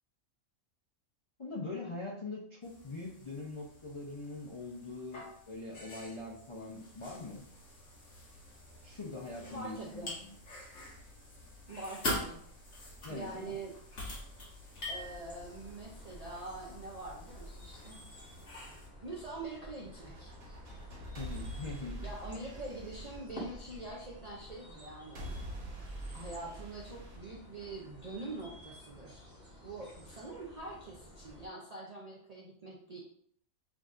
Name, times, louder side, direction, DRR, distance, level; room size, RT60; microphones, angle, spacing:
voice 1, 1.4-7.4 8.8-10.3 13.0-13.6 21.2-22.0, left 3 dB, 45° left, -4 dB, 0.4 m, -42 dB
sound 1, 2.6-18.9, left 1 dB, 70° left, 1.5 m, -45 dB
voice 2, 9.5-10.2 11.7-12.4 13.1-13.8 14.9-18.0 19.0-20.3 22.0-25.4 26.1-29.3 29.6-33.0, right 2 dB, 50° right, -3 dB, 0.4 m, -44 dB
sound 2, 14.7-31.5, equal, 15° left, 1.2 m, -52 dB
sound 3, 19.9-24.0 25.2-28.0, equal, 70° right, 1.6 m, -45 dB
6.0 x 2.6 x 2.4 m, 0.65 s
omnidirectional pair, 1.4 m